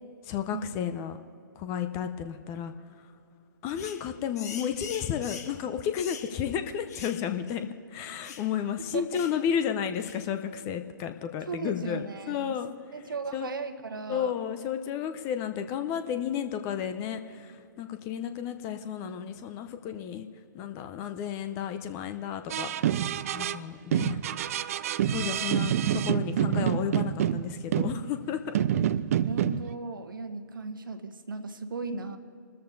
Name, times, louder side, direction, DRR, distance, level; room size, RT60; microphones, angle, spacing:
voice 1, 0.2-1.2 1.6-2.7 3.6-12.7 13.3-13.5 14.1-20.3 20.5-22.7 23.3-24.2 25.1-28.6, left 8 dB, 25° left, 9 dB, 0.7 m, -32 dB
sound 1, 3.7-4.0 4.3-5.6 5.9-6.3 6.9-7.2 7.5-7.6 8.2-8.5 9.1-9.4 10.0-10.2, left 7 dB, 50° left, 1.4 m, -43 dB
voice 2, 11.5-12.6 12.9-14.3 29.3-32.2, right 4 dB, 70° right, 9 dB, 1.2 m, -36 dB
sound 2, 22.5-23.6 23.9-28.3 28.5-29.7, right 10 dB, 40° right, 0.4 m, -27 dB
28.5 x 13.5 x 2.7 m, 2.5 s
figure-of-eight pair, 125°, 12 cm